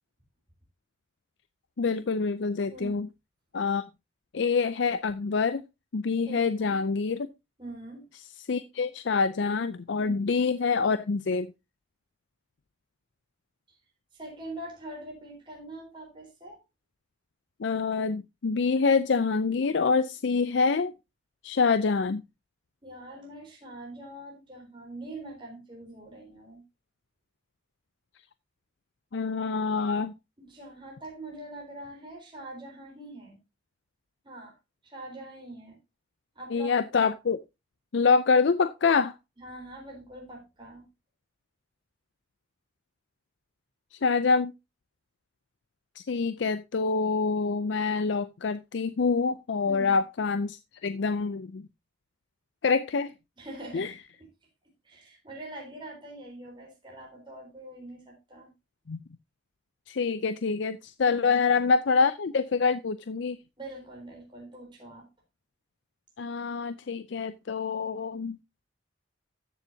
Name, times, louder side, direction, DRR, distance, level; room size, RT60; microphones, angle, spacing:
voice 1, 1.8-3.1 3.5-3.8 4.3-5.6 5.9-7.3 8.5-11.5 17.6-20.9 21.4-22.2 29.1-30.1 36.5-37.4 37.9-39.1 43.9-44.5 46.0-51.7 52.6-53.1 53.7-53.9 58.9-59.0 59.9-63.4 66.2-68.4, left 4 dB, 65° left, 0.5 m, -26 dB
voice 2, 2.7-3.0 6.2-6.8 7.6-8.1 10.0-10.3 13.7-13.8 14.1-16.6 22.8-26.6 30.4-33.4 34.2-34.6 34.8-35.8 36.4-37.1 39.4-40.9 49.7-50.0 53.4-53.9 54.8-58.5 61.1-61.2 63.6-65.1, right 1 dB, 25° right, 4.0 m, -43 dB
14.0 x 7.1 x 2.7 m
head